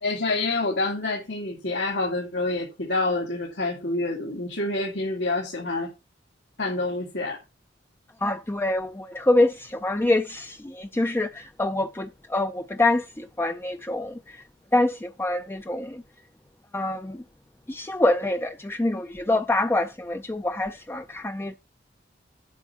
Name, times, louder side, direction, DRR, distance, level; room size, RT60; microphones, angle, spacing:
voice 1, 0.0-5.9 6.6-7.4, left 2 dB, 75° left, 2.4 m, -27 dB
voice 2, 8.2-14.4 14.7-16.0 16.7-17.2 17.7-21.5, left 2 dB, 15° left, 0.4 m, -25 dB
8.1 x 5.8 x 5.5 m
head